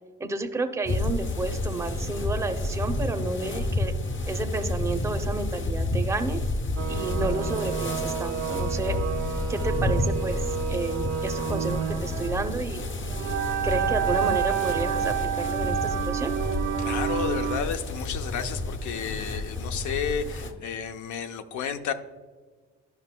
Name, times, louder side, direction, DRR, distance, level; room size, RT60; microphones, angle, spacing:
voice 1, 0.2-3.9 4.3-6.4 6.9-9.0 9.5-12.8 13.6-16.3, right 3 dB, 10° right, 5 dB, 0.6 m, -31 dB
sound 1, 0.8-20.5, left 2 dB, 40° left, 0.8 m, -30 dB
sound 2, 6.8-17.6, right 8 dB, 80° right, 0.9 m, -29 dB
voice 2, 16.8-21.9, left 7 dB, 75° left, 9 dB, 0.7 m, -32 dB
11.5 x 5.4 x 2.2 m, 1.4 s
cardioid pair, 90°, 30 cm